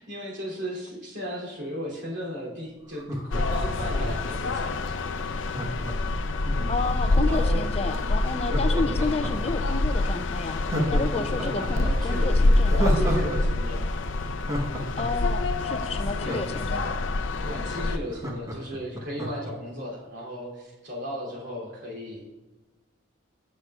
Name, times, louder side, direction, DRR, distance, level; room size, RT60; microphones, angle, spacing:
voice 1, 0.0-5.5 5.9-6.2 6.4-6.7 7.3-7.7 8.5-8.8 10.7-12.4 12.7-13.9 16.2-16.5 17.4-22.3, equal, 65° right, -3 dB, 2.9 m, -35 dB
Laughter, 2.9-4.6 5.4-7.6 8.4-9.8 10.1-10.2 10.6-13.4 13.6-13.7 14.1-17.0 17.5-17.6 17.8-19.5 19.9-20.0, equal, 15° right, 1.1 m, -32 dB
sound 1, 3.3-18.0, left 2 dB, 80° left, 0.6 m, -26 dB
voice 2, 6.7-10.6 10.9-13.3 15.0-16.8, left 3 dB, 30° left, 9 dB, 0.4 m, -31 dB
15.0 x 6.4 x 2.4 m, 1.2 s
head